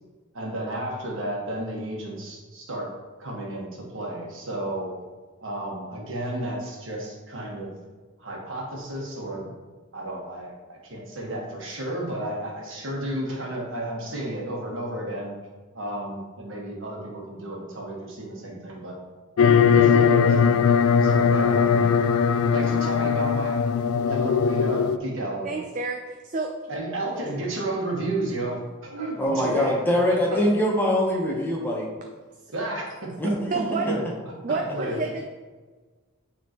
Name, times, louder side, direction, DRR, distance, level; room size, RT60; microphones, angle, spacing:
voice 1, 0.3-2.9 3.2-5.0 5.4-7.8 8.2-9.5 9.9-15.3 15.7-19.0 19.4-20.5 21.0-22.0 22.5-23.6 24.0-25.6 26.7-29.8 30.1-30.4 32.5-33.3 33.8-34.0 34.5-35.0, right 1 dB, 60° right, -2 dB, 1.4 m, -32 dB
sound 1, 19.4-25.0, left 6 dB, 85° left, 0.3 m, -20 dB
voice 2, 25.4-26.5 33.5-33.9 34.4-35.3, right 4 dB, 35° right, 2 dB, 0.4 m, -29 dB
voice 3, 29.2-31.9 33.2-33.3, equal, 10° left, -2 dB, 0.9 m, -23 dB
9.0 x 3.7 x 3.0 m, 1.4 s
head